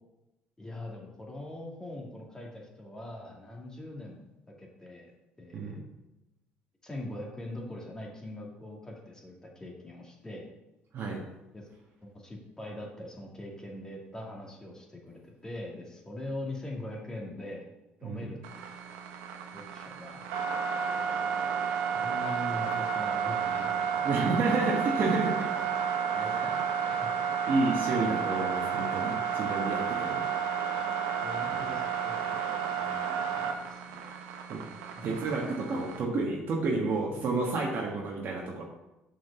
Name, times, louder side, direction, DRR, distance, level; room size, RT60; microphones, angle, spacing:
voice 1, 0.6-4.3 4.6-5.8 6.8-10.5 11.5-11.7 12.0-17.7 18.0-18.4 19.5-20.3 21.9-24.1 26.1-27.1 31.2-32.4 32.8-34.1 35.0-35.1, left 1 dB, 15° left, -1 dB, 2.4 m, -42 dB
sound 1, 18.4-36.0, right 7 dB, 85° right, 1.0 m, -31 dB
voice 2, 24.0-25.3 26.1-26.3 27.5-30.2 34.5-34.6 35.0-38.6, right 3 dB, 60° right, -1 dB, 1.4 m, -30 dB
6.0 x 5.1 x 6.7 m, 0.96 s
supercardioid pair, 80°, 4 cm